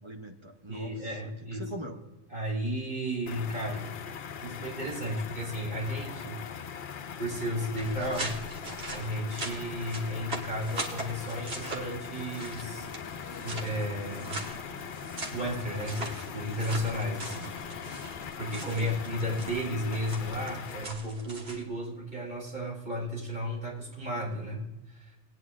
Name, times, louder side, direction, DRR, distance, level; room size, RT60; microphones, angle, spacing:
voice 1, 0.0-2.0 18.7-19.0, right 1 dB, 30° right, 2 dB, 1.1 m, -42 dB
voice 2, 0.7-1.6 2.3-3.9 4.4-8.4 8.8-12.9 13.3-14.5 15.3-25.2, equal, 60° right, -4 dB, 4.0 m, -34 dB
sound 1, 3.3-20.8, left 7 dB, 60° left, 0.7 m, -41 dB
sound 2, 7.7-21.6, right 2 dB, 85° right, 1.8 m, -41 dB
sound 3, 12.6-18.5, left 3 dB, 30° left, 0.4 m, -49 dB
18.5 x 9.7 x 2.5 m, 1.1 s
omnidirectional pair, 1.0 m